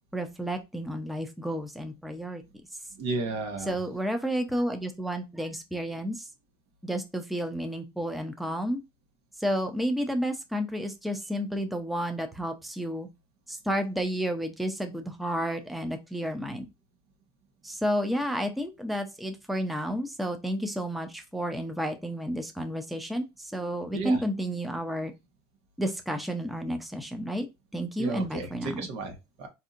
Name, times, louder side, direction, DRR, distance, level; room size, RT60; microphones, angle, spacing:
voice 1, 0.1-2.4 3.7-6.3 6.8-8.8 9.4-13.1 13.5-16.7 17.6-25.1 25.8-27.5 27.7-28.9, equal, ahead, 5 dB, 0.6 m, -31 dB
voice 2, 2.9-3.8 23.9-24.2 28.0-29.5, right 3 dB, 75° right, 5 dB, 1.2 m, -33 dB
4.2 x 2.7 x 2.5 m, 0.23 s
cardioid pair, 120°, 12 cm